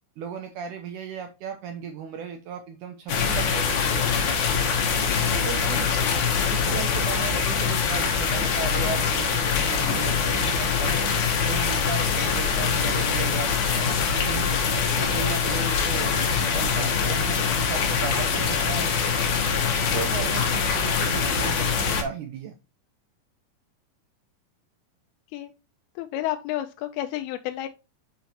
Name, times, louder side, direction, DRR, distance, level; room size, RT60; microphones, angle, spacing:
voice 1, 0.2-4.1 5.4-6.0 6.5-11.0 11.4-14.6 15.0-19.0 19.9-22.5, right 7 dB, 85° right, 1.7 m, -36 dB
sound 1, 3.1-22.0, left 6 dB, 65° left, 2.0 m, -24 dB
voice 2, 26.0-27.7, left 13 dB, 85° left, 2.5 m, -30 dB
6.1 x 5.7 x 2.7 m
omnidirectional pair, 4.4 m